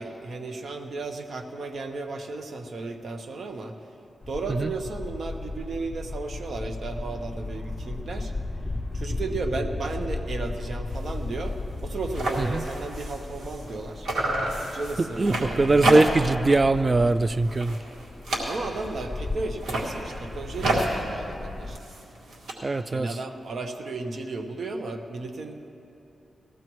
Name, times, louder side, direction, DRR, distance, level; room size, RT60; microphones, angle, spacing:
voice 1, 0.0-3.7 4.3-8.3 8.9-14.1 14.7-16.0 18.4-21.8 22.9-25.7, right 3 dB, 65° right, 4 dB, 0.9 m, -34 dB
sound 1, 4.2-21.8, left 2 dB, 20° left, 0.6 m, -36 dB
sound 2, 10.9-11.2 11.5-11.6 11.8-13.8 14.0-16.4 16.8-17.1 17.4-19.0 19.5-22.5, right 1 dB, 85° right, 1.9 m, -30 dB
voice 2, 15.0-17.8 22.6-23.2, right 3 dB, 30° right, 14 dB, 0.3 m, -22 dB
19.5 x 15.0 x 3.1 m, 2.8 s
cardioid pair, 80°, 0 cm